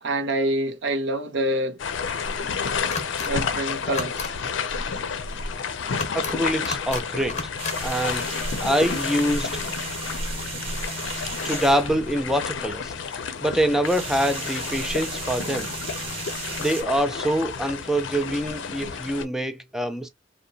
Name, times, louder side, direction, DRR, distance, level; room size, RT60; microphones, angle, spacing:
voice 1, 0.0-1.8 3.2-4.3, right 1 dB, 65° right, 0.6 m, -26 dB
sound 1, 1.8-19.3, left 5 dB, 75° left, 0.5 m, -31 dB
sound 2, 2.9-3.3 3.8-4.3 5.9-6.3 6.6-7.0 7.3-7.8, left 4 dB, 40° left, 0.8 m, -31 dB
voice 2, 6.1-7.5 7.8-8.3 8.6-9.6 11.4-15.7 16.6-20.1, right 1 dB, 5° right, 0.4 m, -25 dB
sound 3, 7.6-11.9 13.7-16.8, right 2 dB, 30° right, 1.0 m, -35 dB
2.8 x 2.1 x 2.5 m
head